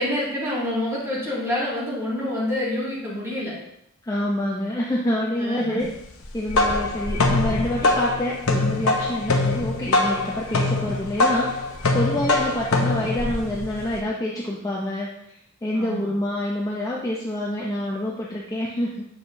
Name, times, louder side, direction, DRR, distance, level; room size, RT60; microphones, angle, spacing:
voice 1, 0.0-3.5 5.4-5.8 15.7-16.1, left 1 dB, 10° right, -8 dB, 2.1 m, -27 dB
voice 2, 4.0-5.9 6.3-15.1 15.6-19.0, left 1 dB, 15° left, -4 dB, 0.5 m, -27 dB
sound 1, 6.2-14.0, left 2 dB, 75° left, 0.8 m, -23 dB
7.2 x 4.9 x 2.6 m, 0.76 s
head